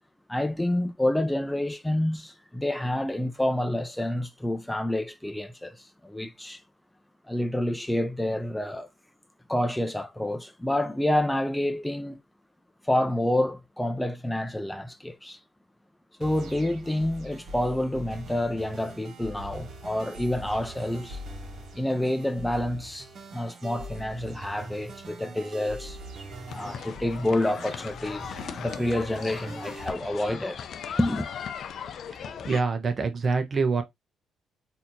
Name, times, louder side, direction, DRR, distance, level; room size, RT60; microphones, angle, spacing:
voice 1, 0.3-6.6 7.3-8.9 9.5-12.2 12.8-15.4 16.2-21.2 21.8-23.1 23.3-26.0 26.5-30.7 31.0-31.3, left 1 dB, 5° left, 0.6 m, -28 dB
sound 1, 16.2-29.9, right 1 dB, 60° right, 1.3 m, -43 dB
sound 2, 26.5-32.6, left 7 dB, 65° left, 0.4 m, -38 dB
voice 2, 32.4-33.8, right 4 dB, 40° right, 0.9 m, -25 dB
4.2 x 2.9 x 2.6 m
cardioid pair, 90°, 0 cm